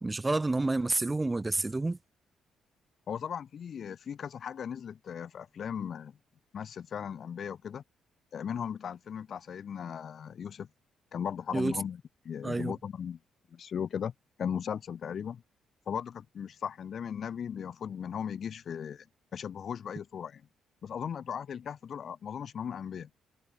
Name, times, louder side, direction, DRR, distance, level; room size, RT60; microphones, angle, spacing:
voice 1, 0.0-2.0 11.5-11.7 12.4-12.7, right 2 dB, 15° right, 0.4 m, -29 dB
voice 2, 3.1-6.2 6.5-7.8 8.3-10.7 11.1-13.2 13.5-14.1 14.4-15.4 15.9-19.1 19.3-20.4 20.8-23.1, left 8 dB, 50° left, 0.4 m, -37 dB
cardioid pair, 130°, 0 cm